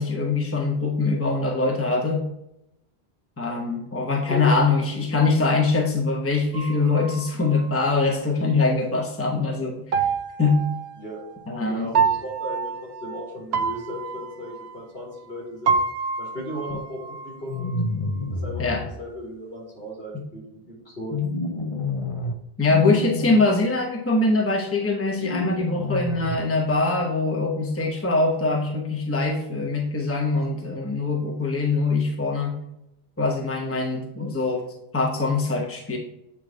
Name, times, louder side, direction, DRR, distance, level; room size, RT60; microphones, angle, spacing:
voice 1, 0.0-2.3 3.4-10.1 10.4-10.6 11.5-11.9 18.6-18.8 21.1-21.3 22.6-32.5 33.2-34.6 34.9-36.0, left 3 dB, 15° left, 0 dB, 0.9 m, -23 dB
voice 2, 4.1-4.5 11.0-11.2 11.7-15.8 16.2-17.8 18.3-18.7 19.0-21.2 23.3-23.6, left 1 dB, 65° left, -4 dB, 3.4 m, -36 dB
sound 1, 6.5-8.3 9.9-11.5 11.9-15.4 15.7-17.8, right 5 dB, 90° right, 0.9 m, -28 dB
sound 2, 17.5-18.9 21.2-22.3 22.7-23.4 25.1-26.3, left 2 dB, 40° left, 0.7 m, -28 dB
8.5 x 3.2 x 5.0 m, 0.83 s
omnidirectional pair, 1.0 m